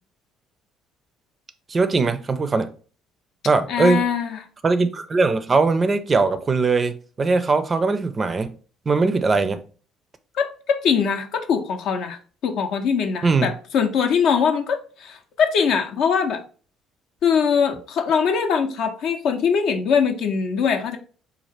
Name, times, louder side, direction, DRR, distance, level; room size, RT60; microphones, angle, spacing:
voice 1, 1.7-2.7 3.4-4.1 4.6-8.5 8.9-9.6 13.2-13.5, right 3 dB, 30° right, 0.4 m, -20 dB
voice 2, 3.7-4.4 10.3-16.4 17.2-21.0, left 6 dB, 55° left, 0.5 m, -22 dB
3.9 x 2.4 x 3.2 m
figure-of-eight pair, 50°, 0 cm